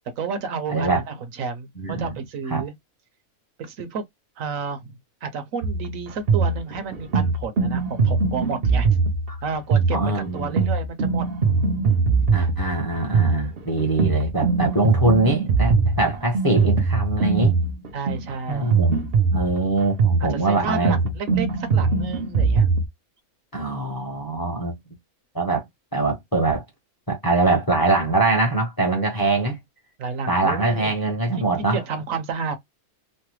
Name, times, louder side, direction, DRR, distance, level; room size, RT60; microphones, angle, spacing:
voice 1, 0.2-2.7 3.6-4.0 4.4-8.9 9.4-11.2 11.8-12.1 17.9-18.7 20.2-22.7 30.0-30.9 31.4-32.6, right 5 dB, 70° right, 1.1 m, -31 dB
voice 2, 0.7-1.0 1.8-2.1 2.5-2.6 9.9-10.6 12.3-17.5 18.5-20.9 23.5-24.7 25.3-25.6 25.9-26.6 27.1-29.6 30.3-31.8, right 2 dB, 20° left, 0.6 m, -23 dB
sound 1, 5.6-22.9, right 4 dB, 50° right, 0.8 m, -21 dB
3.1 x 2.1 x 3.0 m
omnidirectional pair, 1.5 m